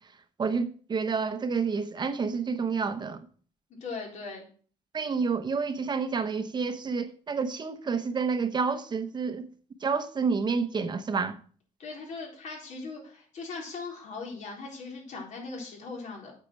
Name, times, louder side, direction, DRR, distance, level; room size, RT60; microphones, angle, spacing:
voice 1, 0.4-3.2 4.9-9.5 9.8-11.4, right 5 dB, 35° right, 0.9 m, -29 dB
voice 2, 3.8-4.5 11.8-16.3, left 4 dB, 65° left, 4.1 m, -39 dB
8.6 x 6.6 x 6.3 m
cardioid pair, 125°, 13 cm